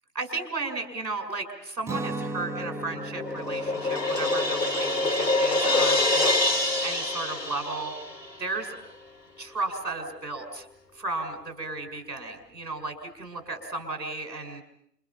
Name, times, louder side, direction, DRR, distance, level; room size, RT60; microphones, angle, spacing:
voice 1, 0.1-7.9 8.4-8.8 9.4-10.7 10.9-14.6, right 3 dB, 85° right, 6 dB, 6.1 m, -34 dB
Guitar, 1.8-7.7, right 2 dB, 5° right, 1.0 m, -39 dB
Crash cymbal, 2.6-8.3, left 2 dB, 90° left, 3.0 m, -26 dB
30.0 x 29.0 x 5.8 m, 0.71 s
figure-of-eight pair, 130°, 49 cm